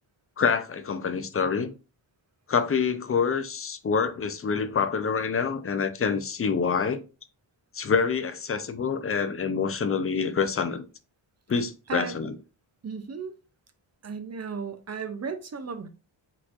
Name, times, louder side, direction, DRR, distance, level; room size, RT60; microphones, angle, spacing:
voice 1, 0.4-1.7 2.5-7.0 7.7-10.8 11.5-12.3, left 5 dB, 30° left, 0.5 m, -26 dB
voice 2, 12.8-13.3 14.0-15.9, right 5 dB, 35° right, 0.5 m, -35 dB
4.4 x 4.2 x 2.4 m
wide cardioid pair, 135°, 47 cm